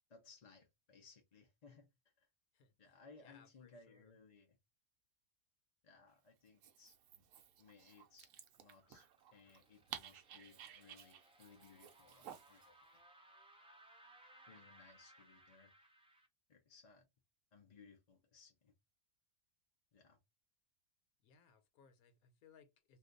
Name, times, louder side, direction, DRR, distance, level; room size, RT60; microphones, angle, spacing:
voice 1, 0.0-1.9 2.2-2.3 2.8-4.6 5.8-7.0 7.6-8.3 8.6-13.0 14.5-15.7 16.5-17.1 17.5-18.7 19.9-20.2, left 4 dB, 45° left, 0.5 m, -63 dB
voice 2, 2.5-4.2 21.2-23.0, left 6 dB, 85° left, 1.2 m, -67 dB
Dog, 6.5-12.7, right 10 dB, 70° right, 0.9 m, -55 dB
sound 1, 8.5-16.3, right 1 dB, 10° right, 0.4 m, -65 dB
2.6 x 2.3 x 3.7 m
omnidirectional pair, 1.5 m